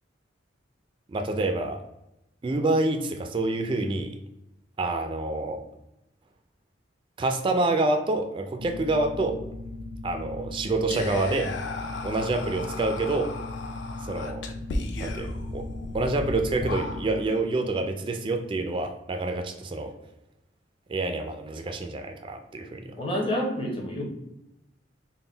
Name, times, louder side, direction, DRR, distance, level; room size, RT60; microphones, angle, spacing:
voice 1, 1.1-1.8 2.4-4.1 4.8-5.6 7.2-9.4 10.0-11.5 12.0-13.3 14.1-14.4 15.0-15.6 15.9-19.9 20.9-23.0, right 2 dB, 25° right, 5 dB, 0.3 m, -27 dB
sound 1, 8.6-17.2, left 2 dB, 80° right, 0.5 m, -38 dB
Whispering, 10.9-17.4, left 2 dB, 65° left, 0.5 m, -35 dB
voice 2, 23.0-24.0, equal, 30° left, 0 dB, 0.8 m, -28 dB
3.8 x 2.1 x 3.8 m, 0.89 s
head